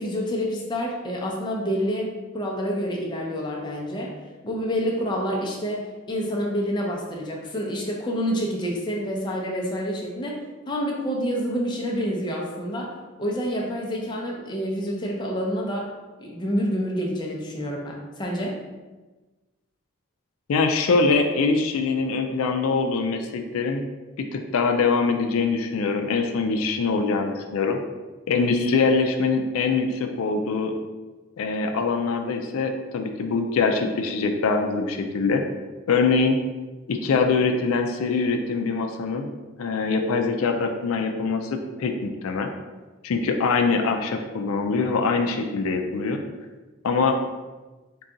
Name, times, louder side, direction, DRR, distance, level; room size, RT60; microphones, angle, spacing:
voice 1, 0.0-4.2 4.4-10.4 10.7-12.9 13.2-15.9 16.2-18.6, equal, 20° left, -2 dB, 0.5 m, -28 dB
voice 2, 20.5-23.8 24.2-27.8 28.3-30.7 31.4-35.4 35.9-36.4 36.9-39.3 39.6-42.5 43.0-46.2 46.8-47.2, left 4 dB, 85° left, 4 dB, 0.4 m, -23 dB
3.8 x 2.3 x 3.8 m, 1.2 s
head